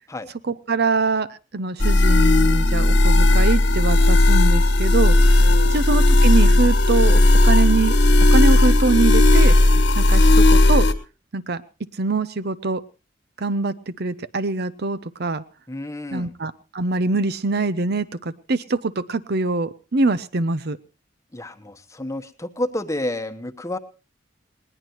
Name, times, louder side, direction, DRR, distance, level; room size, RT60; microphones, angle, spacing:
voice 1, 0.4-5.4 5.7-8.0 8.3-9.6 10.0-10.9 11.3-11.6 12.0-12.8 13.4-15.4 16.1-20.8, right 3 dB, 55° right, 14 dB, 0.7 m, -24 dB
sound 1, 1.8-10.9, left 2 dB, 70° left, 1.5 m, -15 dB
voice 2, 5.4-5.8 15.7-16.3 21.3-23.8, left 1 dB, 15° left, 9 dB, 1.1 m, -30 dB
20.0 x 19.0 x 3.0 m, 0.32 s
head